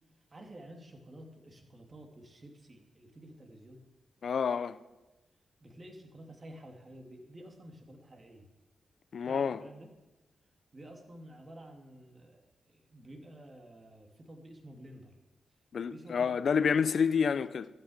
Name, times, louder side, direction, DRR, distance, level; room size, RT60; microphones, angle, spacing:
voice 1, 0.3-3.8 5.6-8.5 9.2-9.9 10.7-15.1 15.9-16.3, right 1 dB, 40° right, 2.9 m, -51 dB
voice 2, 4.2-4.8 9.1-9.6 15.7-17.7, left 6 dB, 70° left, 0.6 m, -28 dB
13.5 x 7.7 x 8.9 m
supercardioid pair, 50°, 0 cm